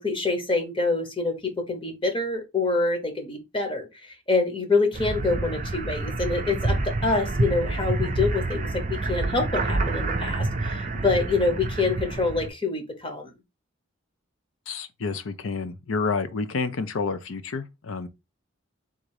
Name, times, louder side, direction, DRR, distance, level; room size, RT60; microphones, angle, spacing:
voice 1, 0.0-13.3, left 3 dB, 25° left, 1.0 m, -26 dB
sound 1, 4.9-12.5, right 2 dB, 40° right, 0.5 m, -28 dB
voice 2, 14.7-18.1, left 4 dB, 80° left, 0.6 m, -29 dB
3.9 x 2.6 x 4.7 m
head